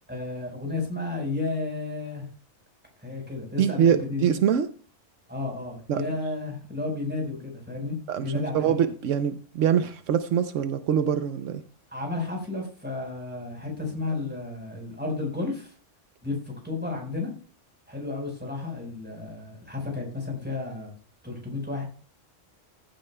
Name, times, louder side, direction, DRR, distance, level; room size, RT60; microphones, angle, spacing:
voice 1, 0.1-2.3 3.0-4.2 5.3-8.7 11.9-15.7 16.2-16.4 16.6-17.3 17.9-20.9 21.2-21.8, left 3 dB, 10° right, 4.5 m, -32 dB
voice 2, 3.6-4.7 5.9-6.0 8.1-11.6, right 8 dB, 80° right, 1.0 m, -24 dB
15.0 x 10.0 x 2.3 m
omnidirectional pair, 1.3 m